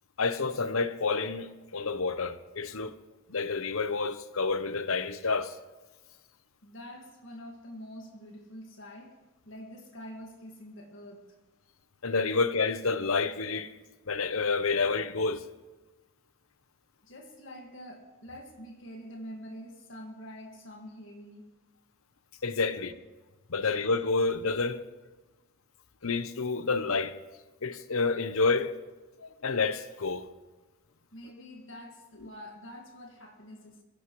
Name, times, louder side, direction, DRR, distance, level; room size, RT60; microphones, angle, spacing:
voice 1, 0.2-3.0 3.3-5.6 12.0-13.7 14.1-15.4 22.4-22.9 23.5-24.8 26.0-27.2 27.6-28.7 29.2-30.3, left 4 dB, 75° left, 0.9 m, -29 dB
voice 2, 6.6-9.2 9.5-11.4 17.0-21.5 31.1-33.8, equal, 60° left, 2.0 m, -46 dB
23.5 x 16.5 x 3.2 m
head